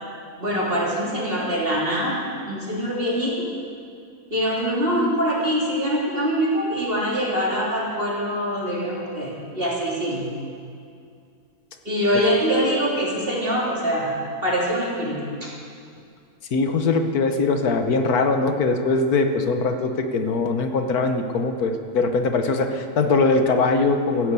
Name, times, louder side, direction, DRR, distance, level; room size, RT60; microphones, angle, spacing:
voice 1, 0.4-2.2 2.5-3.5 4.3-10.3 11.9-14.1 14.4-15.5, equal, 35° right, -5 dB, 3.8 m, -24 dB
voice 2, 16.5-24.3, left 3 dB, 75° left, 6 dB, 1.6 m, -21 dB
15.0 x 11.0 x 8.4 m, 2.3 s
omnidirectional pair, 1.6 m